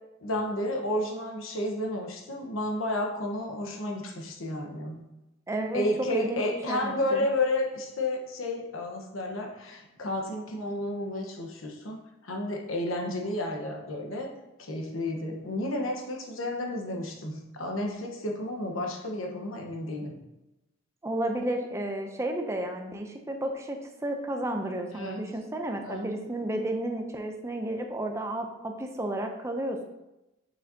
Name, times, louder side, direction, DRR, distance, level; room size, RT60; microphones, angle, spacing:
voice 1, 0.2-5.0 5.7-14.3 14.6-20.1 24.9-25.2 25.8-26.1, left 1 dB, 80° left, 2 dB, 1.1 m, -31 dB
voice 2, 5.5-5.9 6.1-7.3 21.0-29.8, right 1 dB, 15° right, 4 dB, 0.5 m, -32 dB
6.4 x 6.3 x 2.8 m, 0.94 s
head